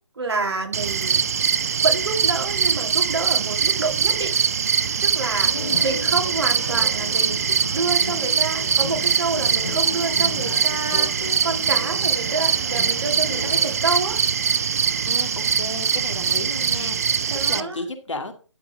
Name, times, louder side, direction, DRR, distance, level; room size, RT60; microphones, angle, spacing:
voice 1, 0.2-1.2 1.8-4.3 5.0-7.4 7.7-14.2 17.3-17.8, right 3 dB, 55° right, 4 dB, 2.7 m, -28 dB
sound 1, 0.7-17.6, right 7 dB, 30° right, 0.5 m, -22 dB
voice 2, 5.5-5.8 15.1-18.3, left 3 dB, 70° left, 6 dB, 2.2 m, -34 dB
sound 2, 5.5-13.8, left 5 dB, 50° left, 0.9 m, -36 dB
12.0 x 4.9 x 4.9 m, 0.35 s
figure-of-eight pair, 150°, 16 cm